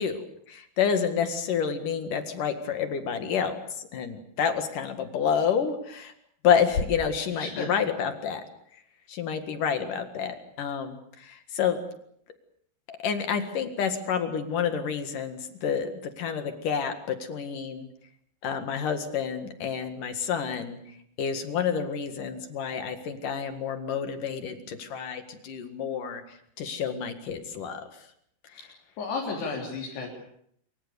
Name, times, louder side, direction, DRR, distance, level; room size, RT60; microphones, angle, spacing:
voice 1, 0.0-6.1 6.4-8.4 9.1-11.8 12.9-17.9 18.4-20.8 21.2-27.9, left 7 dB, 55° left, 8 dB, 3.1 m, -29 dB
voice 2, 7.3-7.7 28.6-28.7 29.0-30.1, left 4 dB, 75° left, -2 dB, 5.8 m, -33 dB
26.0 x 24.5 x 7.0 m, 0.68 s
omnidirectional pair, 4.9 m